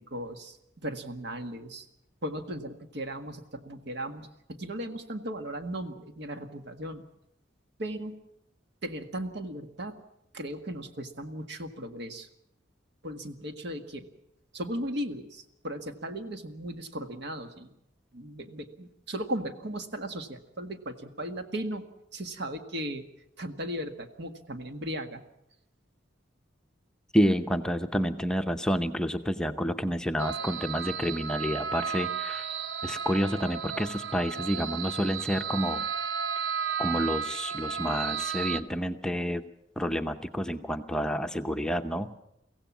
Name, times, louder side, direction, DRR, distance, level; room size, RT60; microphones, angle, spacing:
voice 1, 0.1-0.6 0.8-1.9 2.2-7.0 7.8-8.2 8.8-10.0 10.3-12.3 13.0-14.1 14.5-17.7 18.1-23.1 23.4-25.2, right 1 dB, 65° right, 7 dB, 1.8 m, -37 dB
voice 2, 27.1-32.5 32.8-35.8 36.8-39.4 39.8-42.2, equal, 5° left, 6 dB, 0.7 m, -29 dB
sound 1, 30.2-38.6, right 7 dB, 85° right, 0.8 m, -33 dB
23.5 x 16.0 x 7.3 m, 0.81 s
head